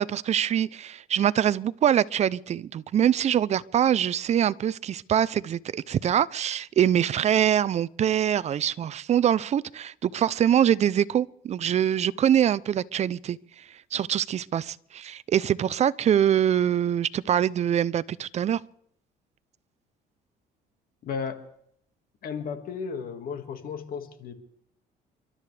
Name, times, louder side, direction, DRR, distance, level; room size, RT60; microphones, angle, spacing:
voice 1, 0.0-13.4 13.9-18.6, right 10 dB, 40° right, 0.5 m, -24 dB
voice 2, 21.0-21.4 22.2-24.3, left 6 dB, 60° left, 1.9 m, -34 dB
30.0 x 12.5 x 3.3 m
cardioid pair, 110°, 17 cm